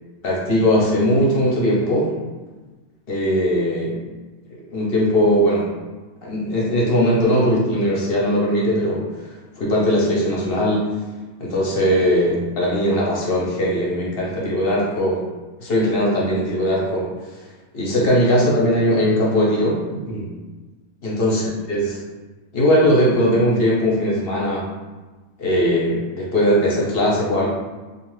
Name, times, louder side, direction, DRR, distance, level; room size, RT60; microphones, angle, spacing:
voice 1, 0.2-2.1 3.1-4.0 4.5-5.7 6.2-10.9 11.4-15.2 15.6-17.1 17.7-20.3 21.0-21.4 21.7-22.0 22.5-24.6 25.4-27.5, equal, 55° left, -5 dB, 0.7 m, -19 dB
2.5 x 2.4 x 3.0 m, 1.2 s
omnidirectional pair, 1.5 m